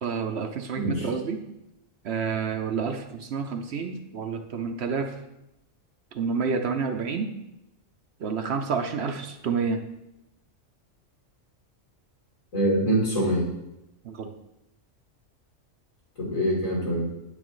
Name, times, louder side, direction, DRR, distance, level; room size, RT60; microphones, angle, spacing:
voice 1, 0.0-1.4 2.0-5.2 6.1-7.3 8.2-9.8 14.0-14.3, right 5 dB, 60° right, 6 dB, 0.9 m, -29 dB
voice 2, 0.8-1.1 12.5-13.5 16.2-17.1, right 1 dB, 80° left, -6 dB, 4.1 m, -24 dB
9.4 x 8.8 x 3.1 m, 0.89 s
omnidirectional pair, 1.4 m